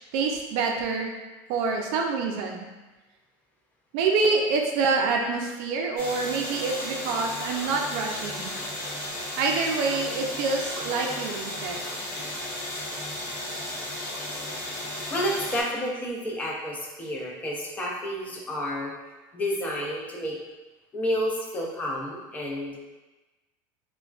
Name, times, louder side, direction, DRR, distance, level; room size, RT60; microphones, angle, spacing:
voice 1, 0.1-1.1 1.5-2.6 3.9-8.5 9.4-11.8, right 4 dB, 60° right, 1 dB, 0.4 m, -26 dB
sound 1, 6.0-15.6, left 1 dB, 70° left, 1.0 m, -34 dB
voice 2, 15.1-18.9 19.3-20.4 20.9-22.8, equal, 15° left, -2 dB, 0.4 m, -30 dB
3.4 x 2.2 x 2.3 m, 1.1 s
cardioid pair, 160°, 9 cm